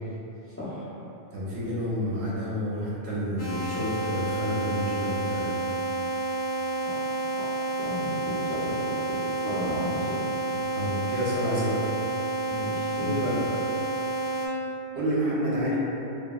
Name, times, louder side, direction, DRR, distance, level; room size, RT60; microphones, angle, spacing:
voice 1, 1.3-5.4 10.7-11.8 12.9-13.4 14.9-15.8, equal, 70° right, -6 dB, 0.8 m, -29 dB
sound 1, 3.4-14.5, right 2 dB, 60° left, 0.7 m, -30 dB
voice 2, 6.8-10.2 12.5-13.2, left 1 dB, 20° left, -12 dB, 0.3 m, -35 dB
2.8 x 2.2 x 2.2 m, 3.0 s
omnidirectional pair, 1.1 m